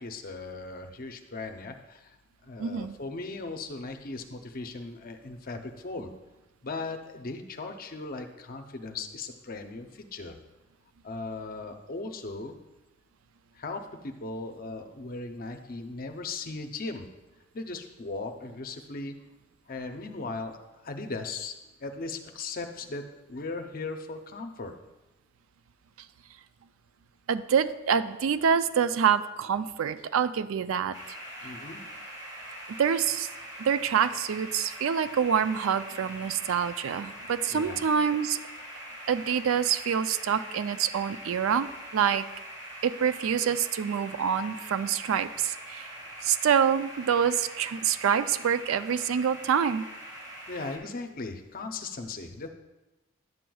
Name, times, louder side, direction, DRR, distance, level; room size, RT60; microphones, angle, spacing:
voice 1, 0.0-2.2 2.4-6.1 6.6-10.4 11.0-12.6 13.5-17.1 17.5-19.1 19.7-20.6 20.8-21.6 21.8-23.0 23.3-24.7 31.4-31.8 37.5-37.8 50.5-52.5, left 3 dB, 40° left, 5 dB, 0.6 m, -38 dB
voice 2, 2.6-3.0 27.3-31.0 31.4-31.5 32.7-33.3 33.6-38.4 39.1-42.3 42.8-49.9, right 7 dB, 75° right, 13 dB, 0.4 m, -26 dB
sound 1, 30.9-50.8, equal, 20° right, 1.7 m, -43 dB
11.0 x 7.6 x 2.3 m, 1.0 s
head